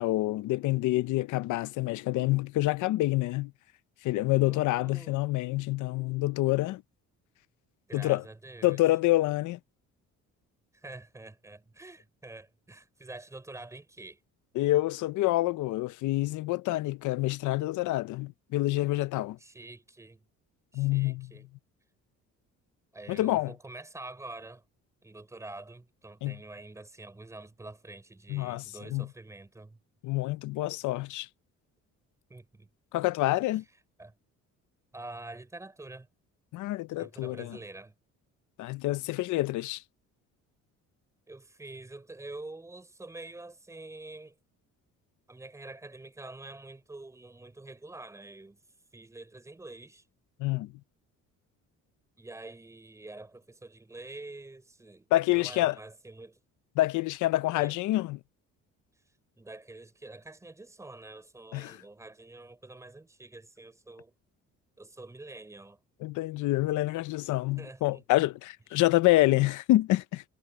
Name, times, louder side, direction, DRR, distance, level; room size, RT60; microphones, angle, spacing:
voice 1, 0.0-3.5 4.0-6.8 7.9-8.2 8.6-9.6 14.5-19.4 20.7-21.3 23.1-23.5 26.2-26.4 28.3-28.6 28.9-29.1 30.0-31.3 32.9-33.6 36.5-37.6 38.6-39.8 50.4-50.7 55.1-55.8 56.8-58.2 61.5-61.8 66.0-70.2, left 17 dB, 80° left, 0.7 m, -27 dB
voice 2, 4.4-5.2 7.9-8.8 10.7-14.2 19.4-20.2 20.7-21.5 22.9-24.6 25.0-29.8 32.3-32.7 34.0-34.1 34.9-36.1 37.0-38.0 41.3-44.4 45.3-48.6 48.9-50.0 52.2-56.4 57.5-57.8 59.4-64.1 64.8-65.8 67.6-68.0 68.8-68.9, right 2 dB, 10° right, 4.4 m, -46 dB
cardioid pair, 180°, 30 cm